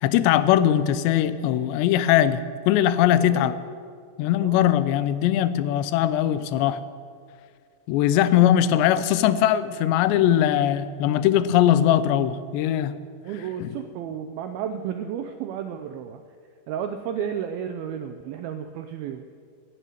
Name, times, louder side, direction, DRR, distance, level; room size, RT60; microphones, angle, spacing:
voice 1, 0.0-3.6 4.2-6.8 7.9-13.0 13.6-13.7, left 11 dB, 90° left, 14 dB, 2.8 m, -20 dB
voice 2, 3.1-3.5 4.4-4.6 8.1-8.9 13.2-16.2 16.7-19.3, right 8 dB, 85° right, 8 dB, 2.1 m, -33 dB
16.0 x 7.8 x 9.1 m, 2.2 s
omnidirectional pair, 4.9 m